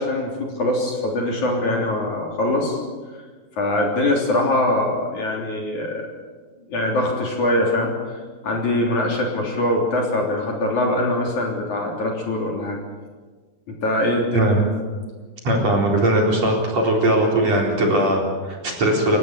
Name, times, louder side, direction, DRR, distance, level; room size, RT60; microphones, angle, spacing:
voice 1, 0.0-2.8 3.6-6.1 6.7-7.9 8.4-12.8 13.7-14.6, left 1 dB, 45° left, 0 dB, 4.4 m, -22 dB
voice 2, 15.4-19.2, right 1 dB, 40° right, -1 dB, 4.9 m, -19 dB
29.0 x 15.5 x 8.4 m, 1.4 s
omnidirectional pair, 5.0 m